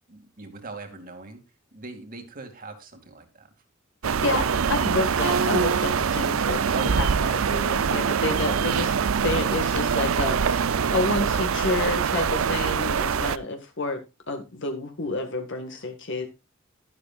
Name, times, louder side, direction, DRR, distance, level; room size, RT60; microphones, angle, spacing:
voice 1, 0.1-1.4 1.7-3.5 6.7-7.6, right 3 dB, 45° right, 6 dB, 2.4 m, -41 dB
voice 2, 4.0-8.9 9.2-10.6 10.9-16.3, left 2 dB, 65° left, 4 dB, 1.7 m, -29 dB
sound 1, 4.0-13.4, right 6 dB, 85° right, 0.5 m, -24 dB
11.5 x 11.5 x 2.4 m, 0.25 s
head